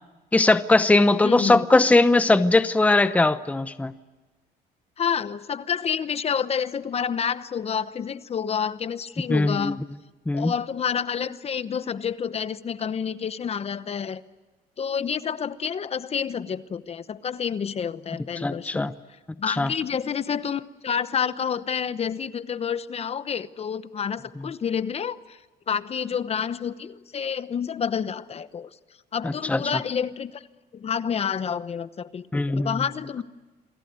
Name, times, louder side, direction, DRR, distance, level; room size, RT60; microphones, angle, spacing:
voice 1, 0.3-3.9 9.3-9.7 10.3-10.5 18.4-18.9 19.5-19.7 29.2-29.6 32.3-32.8, left 2 dB, 10° left, 12 dB, 0.8 m, -20 dB
voice 2, 1.2-1.6 5.0-9.8 10.3-14.2 14.8-18.9 19.4-25.4 25.7-28.7 29.1-30.4 30.7-33.2, left 7 dB, 35° left, 14 dB, 0.9 m, -29 dB
28.5 x 21.5 x 9.5 m, 1.2 s
cardioid pair, 110°, 17 cm